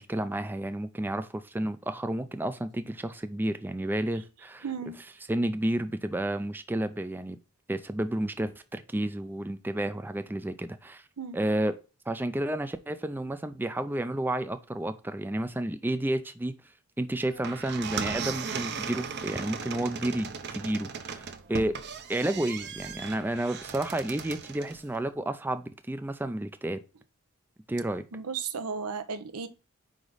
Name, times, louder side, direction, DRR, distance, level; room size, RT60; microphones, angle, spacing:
voice 1, 0.0-4.6 5.3-7.4 7.7-11.0 11.3-11.7 12.1-16.6 17.0-21.8 22.1-26.8 27.7-28.0, right 1 dB, 10° right, 0.3 m, -31 dB
voice 2, 4.6-5.0 11.2-11.4 28.1-29.5, right 5 dB, 90° right, 0.8 m, -34 dB
sound 1, 17.3-24.8, right 6 dB, 50° right, 0.7 m, -37 dB
5.0 x 4.9 x 3.9 m
head